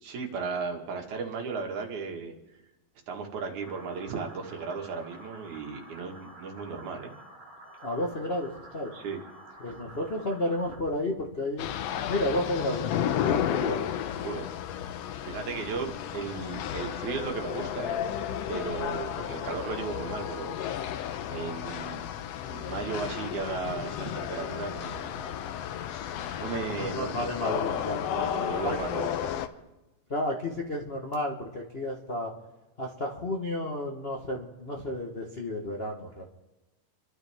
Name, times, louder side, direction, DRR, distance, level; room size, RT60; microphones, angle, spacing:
voice 1, 0.0-2.3 3.1-7.1 8.9-9.2 14.2-14.4 15.2-18.0 18.5-22.0 22.5-25.3 25.8-27.3 27.6-27.8 28.1-29.3, right 5 dB, 85° right, 2 dB, 3.2 m, -36 dB
sound 1, 3.6-10.8, right 1 dB, 55° right, 4.8 m, -50 dB
voice 2, 7.8-8.9 9.6-11.7 12.1-13.8 26.7-28.1 28.6-28.8 30.1-32.3 32.8-36.3, left 1 dB, 55° left, -2 dB, 0.6 m, -32 dB
sound 2, 11.6-29.5, left 10 dB, 75° left, 1.6 m, -33 dB
28.0 x 12.5 x 3.6 m, 1.1 s
omnidirectional pair, 3.3 m